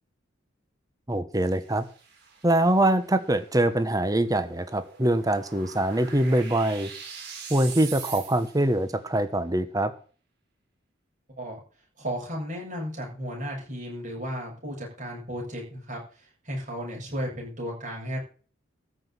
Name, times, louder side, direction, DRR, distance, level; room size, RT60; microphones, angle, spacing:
voice 1, 1.1-1.8 2.4-6.9 7.5-9.9, right 1 dB, 20° right, 10 dB, 1.2 m, -24 dB
sound 1, 1.3-8.8, right 6 dB, 55° right, 6.1 m, -44 dB
voice 2, 12.0-16.0 16.4-18.2, equal, 40° right, -2 dB, 7.9 m, -34 dB
14.0 x 6.1 x 9.2 m, 0.40 s
head